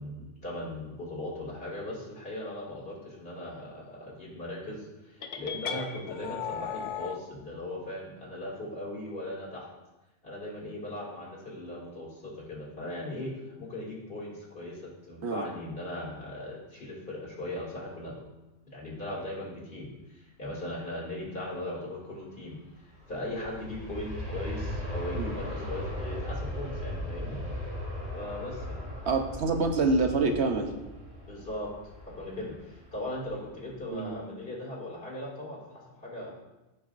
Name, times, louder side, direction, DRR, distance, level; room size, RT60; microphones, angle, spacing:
voice 1, 0.0-9.7 10.2-18.1 18.7-22.6 23.1-27.4 28.1-28.8 31.3-31.7 32.1-36.3, left 1 dB, 50° left, -4 dB, 2.7 m, -38 dB
sound 1, 5.2-7.2, left 7 dB, 85° left, 1.0 m, -36 dB
Aircraft, 22.8-33.7 34.1-34.2, left 1 dB, 20° right, 3.2 m, -38 dB
voice 2, 29.0-30.7 33.9-34.2, right 3 dB, 65° right, 4 dB, 1.1 m, -26 dB
15.0 x 6.1 x 2.6 m, 1.0 s
omnidirectional pair, 1.2 m